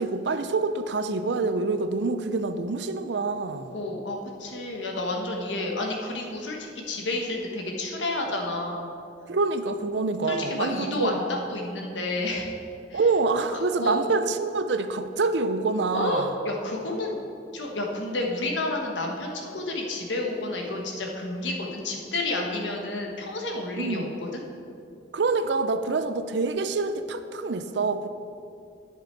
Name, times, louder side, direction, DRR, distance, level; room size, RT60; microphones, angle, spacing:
voice 1, 0.0-3.7 9.3-11.2 12.9-16.3 23.8-24.1 25.1-28.1, right 3 dB, 65° right, 10 dB, 0.5 m, -26 dB
voice 2, 3.7-8.9 10.3-12.5 12.9-13.0 13.5-14.0 15.9-17.2 17.5-24.4, left 2 dB, 85° left, 1 dB, 1.3 m, -30 dB
10.5 x 6.7 x 4.6 m, 2.6 s
head